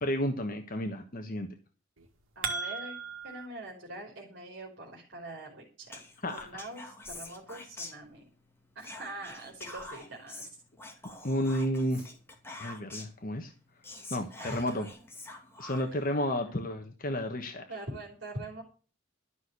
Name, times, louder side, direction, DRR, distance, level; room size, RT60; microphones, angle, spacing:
voice 1, 0.0-1.5 6.2-6.6 11.2-12.1 12.6-13.5 14.1-14.9 15.6-17.6, left 1 dB, 45° left, 4 dB, 1.3 m, -32 dB
sound 1, 2.0-3.5, right 5 dB, 85° right, 2.0 m, -36 dB
voice 2, 2.4-3.0 3.2-6.0 6.3-8.2 8.8-10.5 14.4-14.8 16.1-16.3 17.7-18.6, right 1 dB, 60° right, -2 dB, 3.7 m, -43 dB
Whispering, 5.9-8.4 8.8-13.2 13.6-13.7 13.8-16.1, left 2 dB, 10° left, 2.5 m, -46 dB
13.0 x 6.4 x 8.2 m, 0.38 s
head